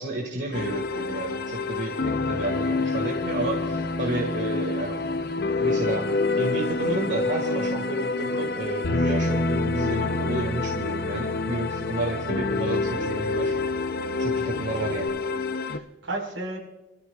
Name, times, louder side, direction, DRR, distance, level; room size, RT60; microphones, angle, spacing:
voice 1, 0.0-5.1 5.6-6.1 6.4-13.6 14.2-15.1, right 2 dB, 60° right, 0 dB, 1.9 m, -31 dB
sound 1, 0.5-15.8, left 3 dB, 50° left, 0.6 m, -27 dB
Bass guitar, 8.8-15.1, left 1 dB, 85° left, 0.7 m, -36 dB
voice 2, 14.5-14.9 15.6-16.6, right 2 dB, 85° right, 0 dB, 4.7 m, -35 dB
27.0 x 13.5 x 2.4 m, 1.1 s
head